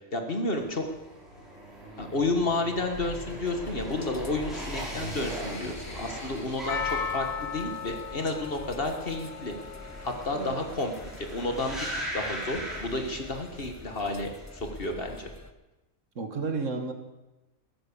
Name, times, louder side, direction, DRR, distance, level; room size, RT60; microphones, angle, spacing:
voice 1, 0.1-0.9 2.0-9.5 10.0-10.9 11.2-11.9 12.1-15.3, left 2 dB, 45° left, 5 dB, 1.9 m, -31 dB
sound 1, 0.6-13.7 14.0-14.5, equal, ahead, 5.8 m, -40 dB
sound 2, 2.9-15.5, left 2 dB, 15° left, 0.6 m, -44 dB
Percussion, 6.7-11.0 11.3-11.4, left 7 dB, 75° left, 1.3 m, -37 dB
voice 2, 16.2-16.9, right 4 dB, 65° right, 6 dB, 1.8 m, -32 dB
14.5 x 13.0 x 7.1 m, 1.0 s
omnidirectional pair, 1.4 m